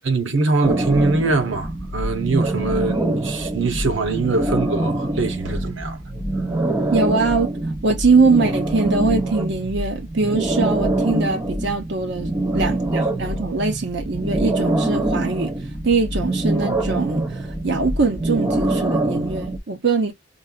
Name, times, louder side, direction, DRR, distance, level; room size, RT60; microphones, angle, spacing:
voice 1, 0.0-6.0 6.8-6.9, right 3 dB, 90° right, 1.0 m, -23 dB
sound 1, 0.6-19.6, right 1 dB, 20° right, 0.7 m, -24 dB
voice 2, 6.9-20.1, right 4 dB, 65° right, 0.7 m, -22 dB
5.3 x 2.6 x 2.3 m
head